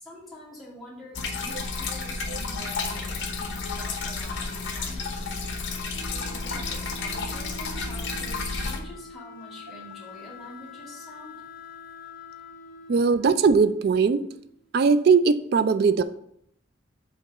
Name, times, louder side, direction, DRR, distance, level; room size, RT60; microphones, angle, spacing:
voice 1, 0.0-5.4 6.1-11.4, equal, ahead, -8 dB, 2.3 m, -45 dB
sound 1, 1.1-8.8, left 4 dB, 70° left, 0.9 m, -31 dB
Wind instrument woodwind instrument, 5.9-14.6, left 1 dB, 45° left, 0.5 m, -45 dB
voice 2, 12.9-14.3 14.7-16.0, right 5 dB, 55° right, 13 dB, 0.3 m, -20 dB
5.2 x 3.9 x 5.5 m, 0.72 s
head